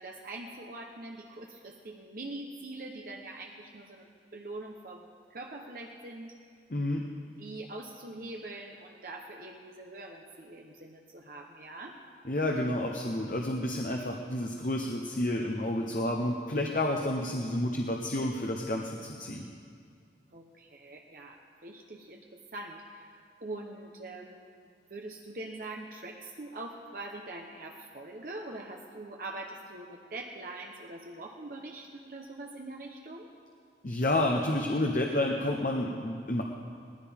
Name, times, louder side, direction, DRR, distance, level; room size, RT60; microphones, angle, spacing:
voice 1, 0.0-6.3 7.4-12.0 20.3-22.2 22.5-33.3, right 2 dB, 50° right, 1 dB, 0.9 m, -43 dB
voice 2, 6.7-7.0 12.2-19.5 33.8-36.4, left 1 dB, 50° left, 1 dB, 0.9 m, -30 dB
19.0 x 15.0 x 3.6 m, 2.3 s
head